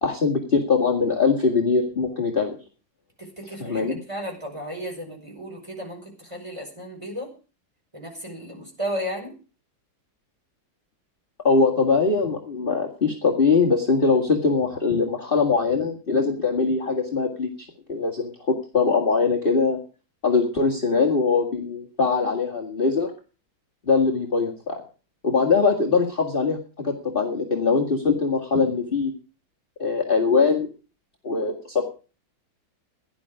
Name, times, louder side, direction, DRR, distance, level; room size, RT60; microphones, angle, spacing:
voice 1, 0.0-2.6 3.6-4.0 11.4-19.8 20.2-23.1 23.9-24.8 25.2-29.1 29.8-30.7 31.2-31.8, left 4 dB, 25° left, 0 dB, 2.2 m, -22 dB
voice 2, 3.2-7.3 7.9-9.4, equal, 15° right, 2 dB, 5.5 m, -34 dB
17.0 x 11.5 x 4.9 m, 0.36 s
omnidirectional pair, 2.2 m